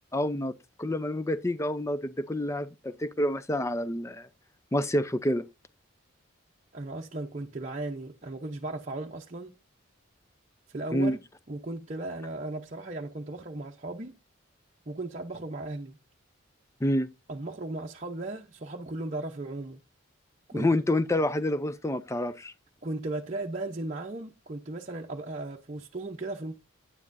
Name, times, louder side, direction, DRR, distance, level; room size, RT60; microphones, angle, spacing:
voice 1, 0.1-0.5 0.8-4.3 4.7-5.4 10.9-11.2 16.8-17.1 20.5-22.5, left 1 dB, 15° left, 0.4 m, -28 dB
voice 2, 6.7-9.5 10.7-11.2 11.5-14.1 14.9-16.0 17.3-19.8 20.5-20.7 22.8-26.5, right 2 dB, 35° right, 0.7 m, -36 dB
9.8 x 9.6 x 2.6 m
head